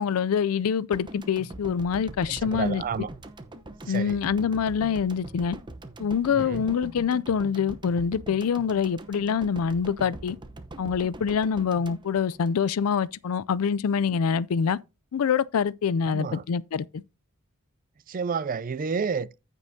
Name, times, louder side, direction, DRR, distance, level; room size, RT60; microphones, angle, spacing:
voice 1, 0.0-2.8 3.9-5.6 6.0-10.4 10.8-14.8 15.1-17.0, left 6 dB, 85° left, 0.4 m, -25 dB
sound 1, 0.9-13.1, right 1 dB, 20° right, 0.8 m, -43 dB
voice 2, 2.3-3.1 3.9-4.2 6.3-6.6 16.1-16.4 18.1-19.4, right 5 dB, 40° right, 0.4 m, -30 dB
15.0 x 5.3 x 2.7 m
head